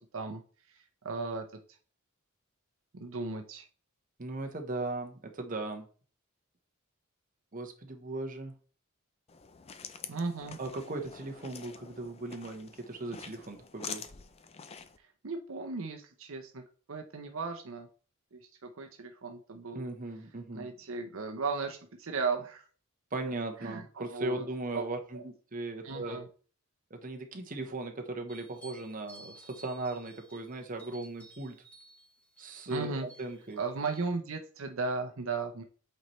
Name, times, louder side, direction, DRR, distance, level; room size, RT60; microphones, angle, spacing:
voice 1, 0.7-1.4 2.9-3.7 10.1-10.6 15.2-16.6 16.9-17.9 18.3-19.8 20.5-22.7 23.6-24.5 24.7-24.8 25.1-25.2 25.8-26.3 32.7-33.1 33.6-35.6, right 4 dB, 65° right, 4 dB, 0.7 m, -36 dB
voice 2, 4.2-5.9 7.5-8.5 10.6-14.0 19.7-20.7 23.1-26.2 26.9-31.6 32.4-33.6, right 2 dB, 40° right, 4 dB, 1.0 m, -38 dB
sound 1, 9.3-15.0, left 6 dB, 30° left, 0.4 m, -46 dB
sound 2, 28.3-34.1, right 2 dB, 5° left, 1.2 m, -56 dB
8.0 x 4.3 x 3.1 m, 0.41 s
head